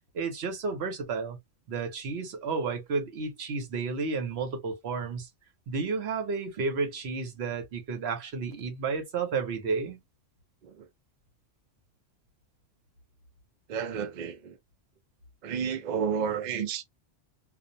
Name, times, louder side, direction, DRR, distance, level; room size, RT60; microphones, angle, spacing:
voice 1, 0.1-1.4 1.7-5.3 5.7-10.0, right 4 dB, 70° right, 1.0 m, -32 dB
voice 2, 13.7-14.6 15.4-16.8, right 7 dB, 55° right, 0.5 m, -31 dB
2.4 x 2.1 x 2.5 m
omnidirectional pair, 1.1 m